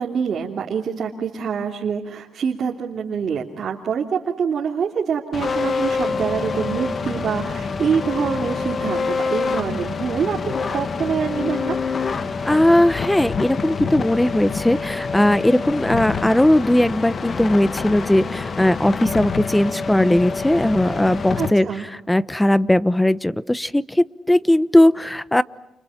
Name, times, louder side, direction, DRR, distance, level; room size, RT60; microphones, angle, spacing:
voice 1, 0.0-10.4 10.7-11.8 21.4-21.8, right 6 dB, 55° right, -2 dB, 3.2 m, -25 dB
sound 1, 5.3-21.5, left 5 dB, 40° left, 1.7 m, -26 dB
voice 2, 12.4-21.7 22.1-25.4, left 1 dB, 10° left, 17 dB, 1.0 m, -18 dB
30.0 x 29.5 x 5.9 m, 0.90 s
cardioid pair, 90°, 0 cm